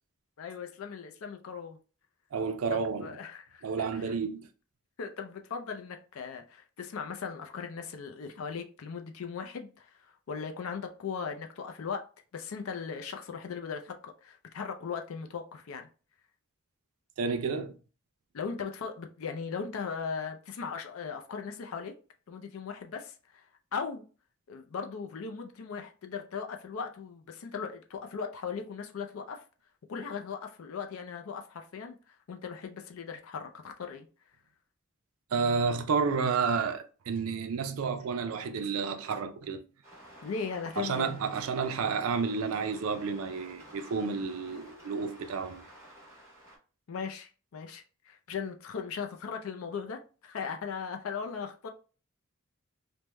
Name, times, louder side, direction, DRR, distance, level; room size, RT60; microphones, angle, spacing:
voice 1, 0.4-1.8 2.7-4.1 5.0-12.1 12.3-15.9 18.3-21.9 22.3-24.0 24.5-29.4 29.9-34.1 40.2-41.2 46.9-51.7, left 6 dB, 85° left, 0.4 m, -38 dB
voice 2, 2.3-3.2 3.6-4.5 17.2-17.8 35.3-39.6 40.8-45.6, right 5 dB, 90° right, 0.4 m, -31 dB
sound 1, 39.8-46.6, right 1 dB, 15° right, 1.1 m, -52 dB
3.4 x 2.1 x 3.0 m
head